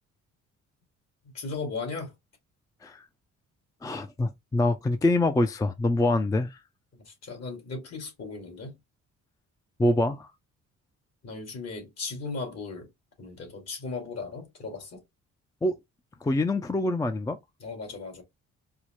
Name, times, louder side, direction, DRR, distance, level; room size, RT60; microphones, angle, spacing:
voice 1, 1.3-2.1 6.9-8.8 11.2-12.9 13.2-15.0 17.6-18.2, left 4 dB, 55° left, 2.1 m, -37 dB
voice 2, 3.8-6.6 9.8-10.3 15.6-15.8 16.2-17.4, left 2 dB, 10° left, 0.4 m, -25 dB
4.7 x 2.0 x 2.9 m
cardioid pair, 90°, 30 cm